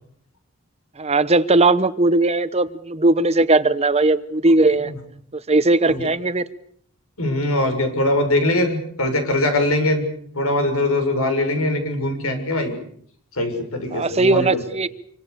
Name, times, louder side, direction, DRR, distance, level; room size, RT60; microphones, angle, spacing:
voice 1, 1.0-4.9 5.5-6.4 13.9-14.9, right 2 dB, 30° right, 13 dB, 1.0 m, -18 dB
voice 2, 7.2-10.0 10.3-12.8 13.3-14.6, left 1 dB, 80° left, 6 dB, 7.0 m, -22 dB
27.0 x 25.0 x 6.9 m, 0.62 s
head